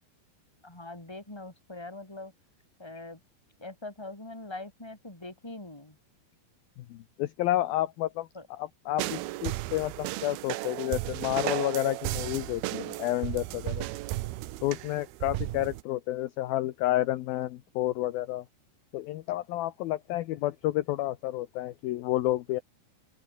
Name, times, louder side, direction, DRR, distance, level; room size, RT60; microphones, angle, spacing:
voice 1, 0.6-2.3 2.8-3.2 3.6-6.0 8.3-8.5, left 2 dB, 5° left, 4.3 m, -42 dB
voice 2, 6.8-8.3 8.6-13.9 14.6-18.5 18.9-22.6, left 15 dB, 70° left, 2.4 m, -30 dB
sound 1, 9.0-15.8, right 18 dB, 75° right, 2.4 m, -34 dB
open air
omnidirectional pair, 5.1 m